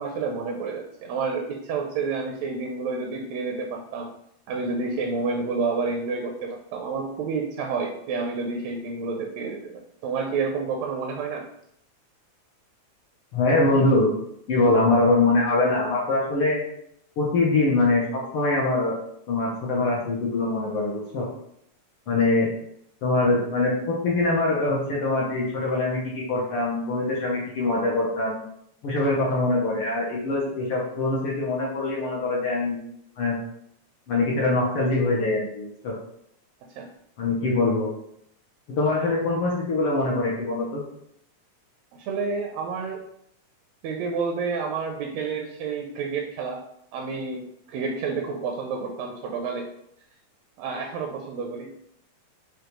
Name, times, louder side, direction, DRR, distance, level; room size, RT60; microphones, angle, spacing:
voice 1, 0.0-4.1 4.5-11.4 36.8-36.9 42.0-43.0 43.8-46.6 46.9-49.7 50.6-51.7, right 4 dB, 80° right, 1 dB, 1.6 m, -29 dB
voice 2, 13.3-14.1 14.5-16.6 17.2-18.9 19.3-21.3 22.1-22.5 23.0-28.4 28.8-32.8 33.2-33.4 34.1-35.9 37.2-37.9 38.7-40.8, left 2 dB, 70° left, -4 dB, 1.3 m, -23 dB
6.5 x 2.3 x 3.0 m, 0.73 s
omnidirectional pair, 3.3 m